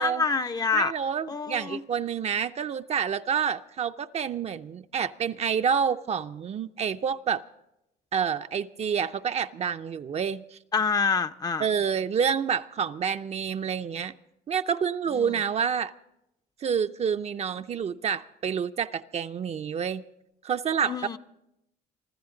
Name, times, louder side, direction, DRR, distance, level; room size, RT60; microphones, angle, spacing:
voice 1, 0.0-0.9 1.3-1.8 10.7-11.7 15.2-15.3 20.8-21.2, left 5 dB, 25° left, 0.5 m, -26 dB
voice 2, 0.7-7.4 8.1-10.6 11.6-14.1 14.5-15.9 16.6-20.0 20.4-21.2, right 7 dB, 40° right, 0.5 m, -28 dB
25.5 x 13.5 x 3.8 m
cardioid pair, 110°, 17 cm